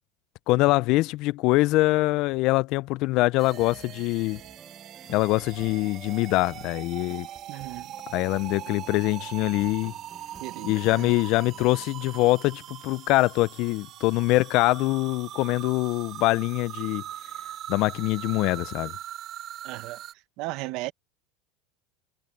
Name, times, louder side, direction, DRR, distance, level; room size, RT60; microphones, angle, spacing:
voice 1, 0.5-4.4 5.1-7.3 8.1-9.9 10.6-17.0 17.7-18.9, left 20 dB, 50° left, 0.3 m, -24 dB
sound 1, 3.3-12.9, right 5 dB, 15° right, 2.0 m, -52 dB
sound 2, 3.4-20.1, right 12 dB, 35° right, 3.8 m, -41 dB
voice 2, 7.5-7.9 10.4-11.1 19.6-20.0 20.4-20.9, right 19 dB, 50° right, 1.0 m, -36 dB
cardioid pair, 160°, 0 cm